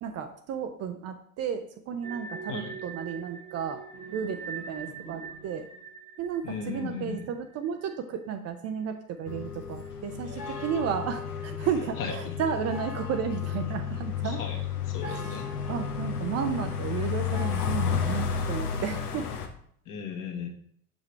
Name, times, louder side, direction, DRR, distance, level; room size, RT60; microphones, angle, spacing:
voice 1, 0.0-3.8 4.1-5.7 6.2-14.4 15.0-15.4 15.7-19.3, right 7 dB, 35° right, 7 dB, 0.6 m, -33 dB
sound 1, 2.0-8.9 9.1-9.3 9.8-15.2, right 4 dB, 15° right, 1.1 m, -45 dB
sound 2, 3.9-6.0, right 5 dB, 80° right, 1.1 m, -49 dB
voice 2, 6.4-7.3 10.4-10.6 12.0-12.4 14.2-14.6 14.9-15.5 19.8-20.5, left 6 dB, 40° left, 2 dB, 1.5 m, -36 dB
sound 3, 9.3-19.5, left 7 dB, 80° left, 0.9 m, -32 dB
6.9 x 5.3 x 3.1 m, 0.63 s
figure-of-eight pair, 75°, 46 cm